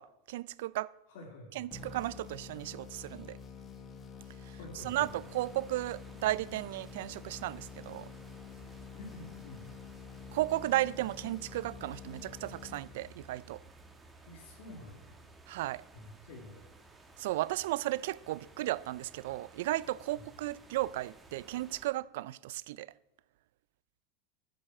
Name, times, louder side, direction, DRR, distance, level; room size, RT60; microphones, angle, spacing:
voice 1, 0.0-0.9 1.6-3.4 4.5-4.6 4.8-8.1 10.3-13.6 15.5-15.8 17.2-22.9, right 16 dB, 75° right, 0.4 m, -34 dB
voice 2, 1.1-1.7 4.5-5.1 8.9-9.7 14.3-15.2 15.9-16.6 20.1-20.2, left 1 dB, 70° left, 2.9 m, -49 dB
sound 1, 1.7-13.4, left 6 dB, 20° left, 1.5 m, -48 dB
sound 2, 4.8-21.9, right 3 dB, 10° right, 1.4 m, -57 dB
14.0 x 7.8 x 6.0 m
supercardioid pair, 145°, 0 cm